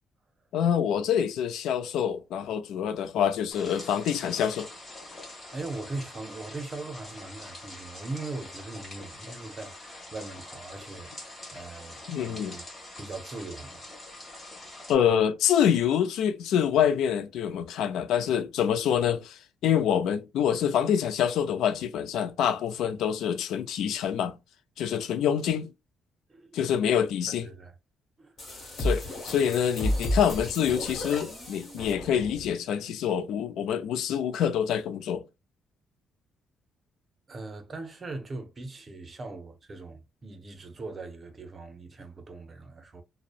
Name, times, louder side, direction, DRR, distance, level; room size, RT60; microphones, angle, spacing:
voice 1, 0.5-4.7 12.1-12.6 14.9-24.4 24.8-25.7 26.5-27.4 28.8-35.2, left 9 dB, 85° left, 0.3 m, -26 dB
sound 1, 3.5-15.0, left 2 dB, 20° left, 1.1 m, -44 dB
voice 2, 5.3-12.7 13.0-13.9 26.3-26.5 26.9-27.7 28.2-28.7 29.4-29.5 37.3-43.0, right 3 dB, 30° right, 0.6 m, -40 dB
sound 2, 28.4-32.5, left 1 dB, 35° left, 1.4 m, -32 dB
2.6 x 2.0 x 2.4 m
cardioid pair, 150°, 0 cm